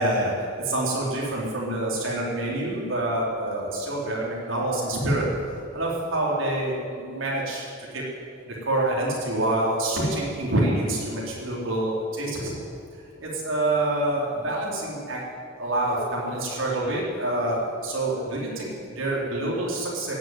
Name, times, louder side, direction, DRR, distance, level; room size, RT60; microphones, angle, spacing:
voice 1, 0.0-5.3 5.7-8.0 8.4-12.5 13.2-15.2 15.6-20.1, right 1 dB, 75° right, -4 dB, 4.1 m, -27 dB
16.0 x 9.3 x 9.3 m, 2.4 s
head